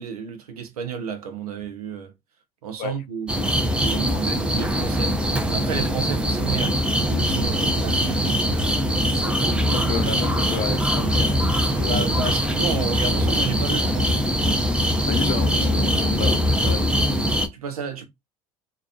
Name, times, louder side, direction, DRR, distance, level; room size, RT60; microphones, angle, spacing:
voice 1, 0.0-2.1 2.6-3.3 3.7-5.2 5.5-8.6 9.0-9.9 11.9-14.2 17.5-18.1, right 6 dB, 90° right, 0.6 m, -32 dB
sound 1, 3.3-17.5, equal, 5° right, 0.5 m, -22 dB
voice 2, 3.9-4.4 9.7-12.3 15.1-17.1, left 10 dB, 55° left, 0.4 m, -32 dB
2.3 x 2.1 x 2.6 m
hypercardioid pair, 70°, 18 cm